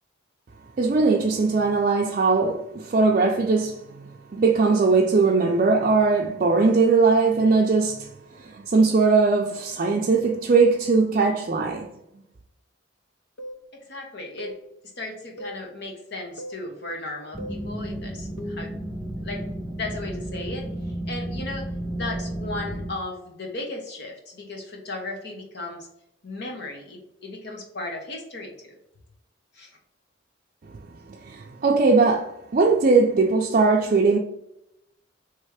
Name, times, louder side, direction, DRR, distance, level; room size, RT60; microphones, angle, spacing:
voice 1, 0.8-11.9 31.1-34.2, right 4 dB, 45° right, 0.5 m, -20 dB
sound 1, 13.4-13.6 14.4-14.6 15.4-15.6 16.4-16.6 17.4-17.6 18.4-18.7, equal, 80° left, 0.7 m, -37 dB
voice 2, 13.9-14.5 15.0-18.7 19.2-19.5 19.7-21.7 21.9-25.9 26.2-28.8 29.5-29.8, left 2 dB, 60° left, 1.2 m, -36 dB
sound 2, 17.3-22.9, right 1 dB, 5° right, 0.7 m, -32 dB
3.4 x 3.3 x 4.8 m
head